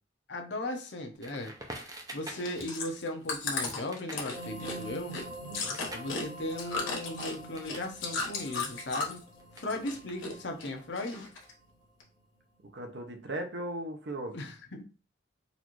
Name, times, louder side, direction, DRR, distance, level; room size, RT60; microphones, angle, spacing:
voice 1, 0.3-1.5 1.8-5.2 5.9-9.3 9.5-11.3 14.3-14.8, left 1 dB, 65° left, 4 dB, 0.7 m, -37 dB
Crackle, 1.2-7.9 8.2-10.6, right 1 dB, 20° right, 0.5 m, -48 dB
Chewing mastication, 2.2-9.3 9.6-10.3 10.6-11.5 12.0-12.1, left 4 dB, 90° left, 1.1 m, -35 dB
sound 1, 4.3-12.1, right 2 dB, 25° left, 1.3 m, -46 dB
voice 2, 5.4-5.8 12.7-14.4, right 1 dB, 60° right, 5 dB, 0.7 m, -38 dB
4.0 x 2.5 x 3.0 m, 0.35 s
head